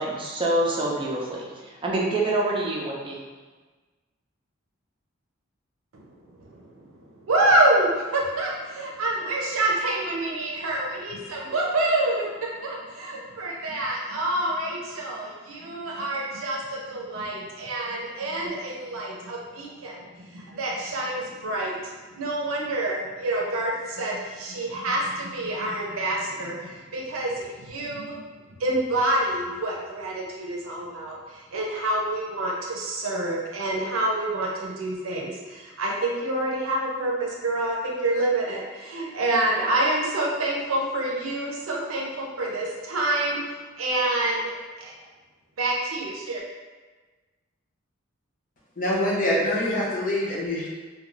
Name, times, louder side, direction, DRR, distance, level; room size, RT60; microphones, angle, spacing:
voice 1, 0.0-3.2, right 2 dB, 25° right, -3 dB, 0.4 m, -26 dB
voice 2, 5.9-12.3 12.6-28.2 28.6-44.5 44.8-44.9 45.6-46.4, right 1 dB, 80° right, -2 dB, 0.6 m, -27 dB
voice 3, 48.8-50.7, left 1 dB, 40° left, -4 dB, 0.6 m, -25 dB
2.4 x 2.3 x 3.0 m, 1.3 s
head